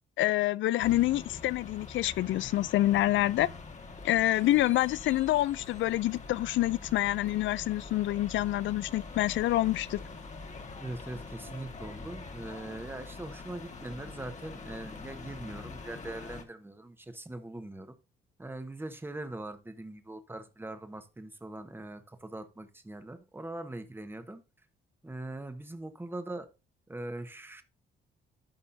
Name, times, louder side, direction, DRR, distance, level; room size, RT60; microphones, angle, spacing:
voice 1, 0.2-3.5 4.0-10.0, left 15 dB, 70° left, 0.4 m, -27 dB
sound 1, 0.8-16.4, left 3 dB, 35° left, 1.5 m, -45 dB
voice 2, 10.8-17.9 18.4-24.4 25.0-26.5 26.9-27.6, right 2 dB, 10° right, 1.2 m, -41 dB
13.0 x 5.3 x 2.7 m
cardioid pair, 90°, 20 cm